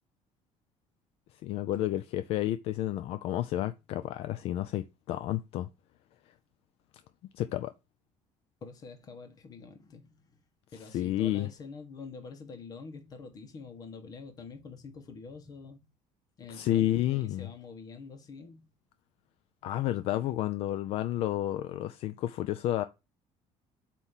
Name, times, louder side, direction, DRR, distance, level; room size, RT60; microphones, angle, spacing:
voice 1, 1.4-5.7 7.3-7.7 10.9-11.5 16.5-17.5 19.6-22.8, left 13 dB, 55° left, 0.5 m, -30 dB
voice 2, 8.6-10.4 10.7-15.9 16.4-18.7, left 4 dB, 30° left, 1.3 m, -46 dB
8.0 x 3.1 x 5.7 m
cardioid pair, 175°, 12 cm